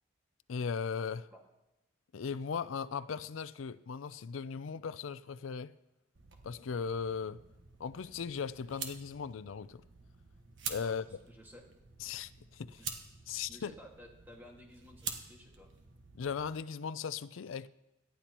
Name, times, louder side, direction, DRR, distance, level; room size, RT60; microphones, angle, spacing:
voice 1, 0.5-1.3 2.1-5.7 6.4-7.4 7.8-9.8 10.7-11.0 12.0-12.8 13.3-13.7 16.1-17.7, left 6 dB, 80° left, 16 dB, 0.4 m, -38 dB
sound 1, 6.1-16.5, right 6 dB, 70° right, 1.4 m, -47 dB
voice 2, 10.8-11.6 12.8-12.9 13.5-15.7, left 1 dB, 10° right, 0 dB, 1.9 m, -55 dB
18.0 x 12.5 x 3.0 m, 0.95 s
head